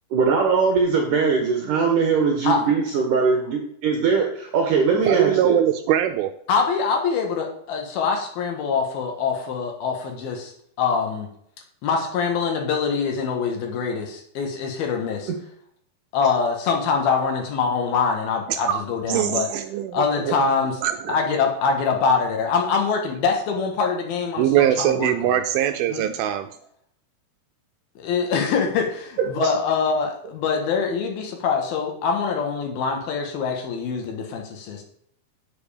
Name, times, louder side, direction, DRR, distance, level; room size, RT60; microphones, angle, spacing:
voice 1, 0.1-5.6 20.2-20.3 26.0-26.1 29.4-29.5, right 5 dB, 65° right, 2 dB, 2.5 m, -21 dB
voice 2, 5.1-6.3 18.7-18.8 19.1-20.0 20.8-21.2 24.4-26.5, right 11 dB, 80° right, 7 dB, 2.4 m, -22 dB
voice 3, 6.5-10.5 10.8-11.3 11.8-15.3 16.1-19.5 19.9-20.8 21.1-25.4 25.9-26.1 28.0-34.8, left 5 dB, 75° left, 3 dB, 3.3 m, -24 dB
9.4 x 7.9 x 5.0 m, 0.67 s
omnidirectional pair, 4.5 m